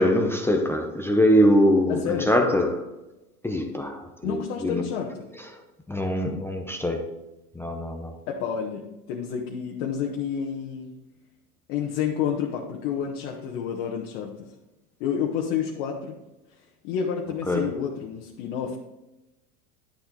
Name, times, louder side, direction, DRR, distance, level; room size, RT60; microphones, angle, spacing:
voice 1, 0.0-2.9 3.4-4.9 5.9-7.1 7.6-8.1 17.5-17.8, equal, 5° left, 0.6 m, -23 dB
voice 2, 1.9-2.3 4.2-5.3 8.3-10.9 11.7-14.5 15.0-16.1 16.8-18.8, left 7 dB, 60° left, 1.4 m, -29 dB
10.5 x 7.5 x 3.9 m
supercardioid pair, 135°, 45 cm